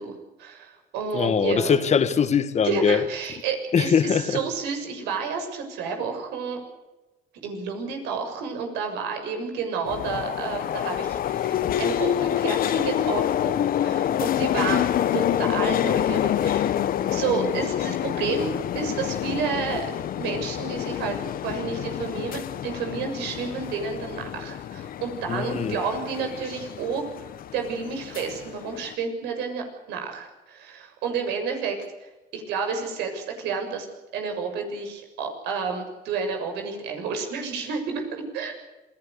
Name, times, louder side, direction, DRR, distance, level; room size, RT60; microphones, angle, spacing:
voice 1, 0.0-1.8 2.6-6.6 7.4-13.6 13.8-14.9 15.1-16.7 17.1-19.9 20.2-21.2 21.4-27.1 27.5-33.9 34.1-38.5, right 5 dB, 90° right, 6.9 m, -30 dB
voice 2, 1.1-3.0 3.7-4.4 25.3-25.8, left 7 dB, 40° left, 2.0 m, -22 dB
sound 1, 9.9-28.9, left 11 dB, 60° left, 1.1 m, -27 dB
27.0 x 18.5 x 6.8 m
cardioid pair, 110°, 17 cm